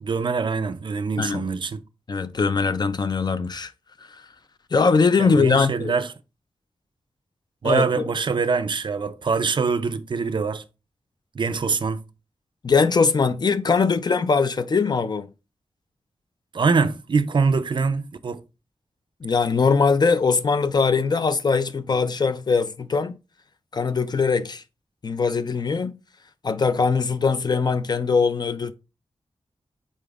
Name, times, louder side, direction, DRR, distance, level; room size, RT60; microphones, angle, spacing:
voice 1, 0.0-1.8 5.2-6.1 7.6-10.6 11.4-12.0 16.5-18.4, right 4 dB, 50° right, 0.4 m, -24 dB
voice 2, 2.1-3.7 4.7-5.9 7.6-8.0 12.6-15.3 19.2-23.2 23.7-24.6 25.0-25.9 26.4-28.7, left 5 dB, 40° left, 0.4 m, -21 dB
5.1 x 4.2 x 2.4 m
wide cardioid pair, 110°, 10 cm